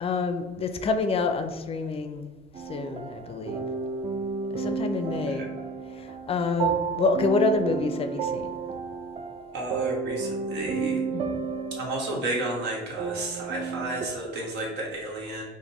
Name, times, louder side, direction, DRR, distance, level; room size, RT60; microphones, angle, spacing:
voice 1, 0.0-2.3 2.7-3.6 4.5-5.5 5.9-8.5 11.1-11.2, left 4 dB, 35° left, 7 dB, 0.4 m, -27 dB
sound 1, 2.5-14.1, right 5 dB, 40° right, 0.4 m, -32 dB
voice 2, 9.5-11.0 11.8-15.4, right 2 dB, 80° right, -3 dB, 1.3 m, -32 dB
5.1 x 2.1 x 2.9 m, 1.2 s
cardioid pair, 110°, 17 cm